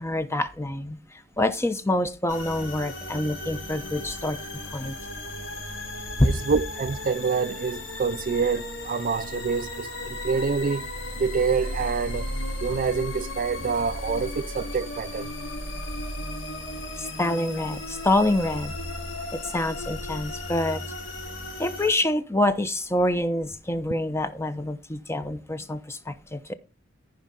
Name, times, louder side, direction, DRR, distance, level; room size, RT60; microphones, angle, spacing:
voice 1, 0.0-4.4 4.7-5.0 6.2-6.3 17.0-18.8 19.3-20.8 21.6-26.5, left 1 dB, 15° left, 0.8 m, -26 dB
sound 1, 2.3-21.9, left 1 dB, 90° left, 4.5 m, -35 dB
voice 2, 6.2-10.9 11.2-12.3 12.6-15.3, right 5 dB, 45° right, 0.4 m, -26 dB
14.5 x 5.5 x 3.7 m
head